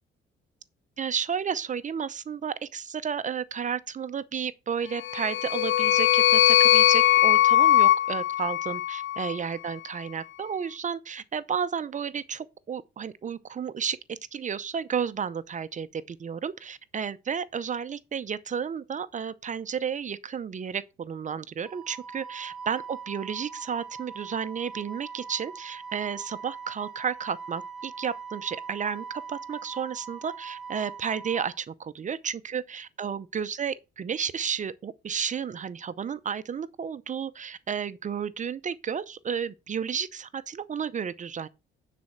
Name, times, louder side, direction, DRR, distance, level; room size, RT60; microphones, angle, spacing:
voice 1, 1.0-41.5, right 7 dB, 40° right, 0.6 m, -32 dB
sound 1, 5.0-9.4, left 13 dB, 75° left, 0.4 m, -20 dB
Wind instrument woodwind instrument, 21.6-31.5, right 5 dB, 5° right, 2.6 m, -41 dB
9.4 x 4.2 x 6.0 m
cardioid pair, 90°, 20 cm